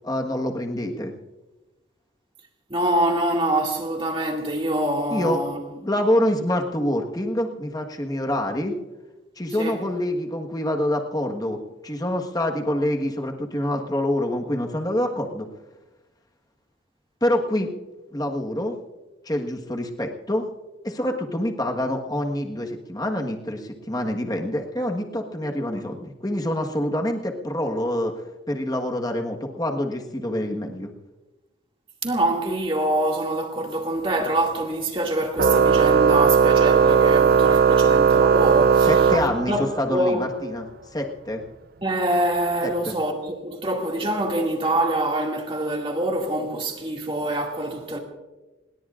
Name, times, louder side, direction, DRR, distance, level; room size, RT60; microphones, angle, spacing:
voice 1, 0.0-1.1 5.1-5.4 5.8-8.8 9.4-11.6 11.8-15.5 17.2-17.7 18.1-18.7 19.2-20.4 20.8-28.1 28.5-30.9 38.8-41.4 42.6-42.9, left 1 dB, 20° left, 1.4 m, -26 dB
voice 2, 2.7-5.6 9.6-9.8 32.0-39.1 39.5-40.3 41.8-48.0, right 1 dB, 30° right, 2.3 m, -25 dB
Organ, 35.4-39.9, right 6 dB, 50° right, 0.4 m, -17 dB
26.5 x 20.5 x 2.5 m
head